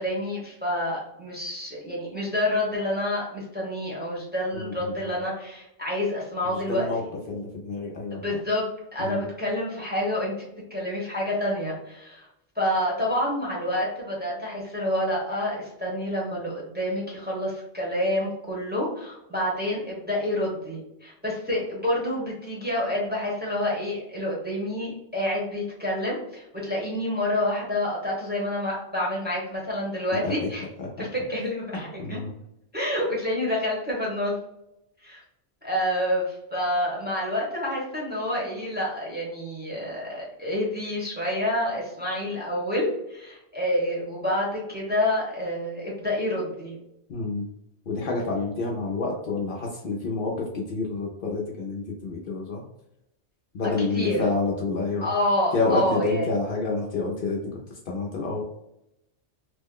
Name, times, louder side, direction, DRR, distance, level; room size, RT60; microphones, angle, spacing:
voice 1, 0.0-7.1 8.1-8.6 8.9-10.3 10.7-12.3 12.6-30.7 31.0-32.2 32.7-34.4 35.0-35.2 35.6-46.8 53.8-54.2 55.0-56.3, left 1 dB, 10° right, -4 dB, 0.8 m, -28 dB
voice 2, 4.5-4.9 6.4-7.0 7.3-8.4 9.0-9.2 30.2-30.5 30.8-31.1 32.0-32.3 47.1-47.5 47.9-52.6 53.5-55.1 55.5-57.4 57.9-58.4, left 3 dB, 60° left, -2 dB, 0.7 m, -28 dB
2.9 x 2.1 x 3.6 m, 0.83 s
omnidirectional pair, 1.1 m